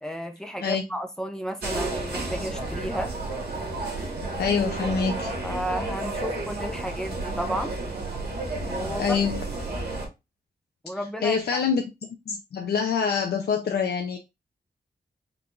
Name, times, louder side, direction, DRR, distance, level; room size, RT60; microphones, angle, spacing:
voice 1, 0.0-3.1 5.4-7.7 8.7-9.2 10.8-11.6, equal, 5° left, 0.7 m, -32 dB
sound 1, 1.6-10.1, right 2 dB, 80° right, 2.0 m, -31 dB
voice 2, 4.4-5.3 8.7-9.4 11.2-11.8 12.3-14.2, left 6 dB, 80° left, 0.6 m, -25 dB
4.8 x 2.5 x 3.5 m
wide cardioid pair, 170°, 17 cm